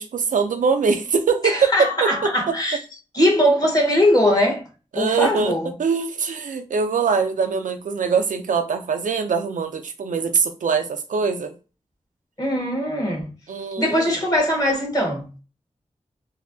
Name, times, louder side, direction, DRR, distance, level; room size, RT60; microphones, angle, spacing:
voice 1, 0.0-2.5 4.9-11.5 13.5-14.1, right 5 dB, 90° right, 0.4 m, -23 dB
voice 2, 1.4-2.8 3.1-4.6 4.9-5.7 12.4-13.3 13.8-15.3, left 1 dB, 30° left, 1.3 m, -20 dB
3.0 x 2.6 x 2.6 m
wide cardioid pair, 60°, 13 cm